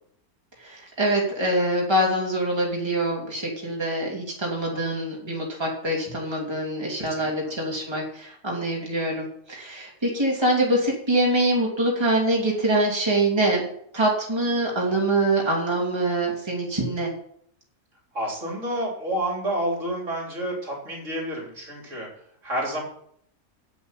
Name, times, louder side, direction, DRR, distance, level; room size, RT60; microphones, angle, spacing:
voice 1, 0.6-13.7 13.9-17.1, right 1 dB, 15° right, -3 dB, 2.9 m, -24 dB
voice 2, 7.0-7.5 18.1-22.1 22.4-22.8, right 1 dB, 55° right, -1 dB, 3.9 m, -29 dB
8.3 x 8.0 x 9.0 m, 0.66 s
omnidirectional pair, 1.6 m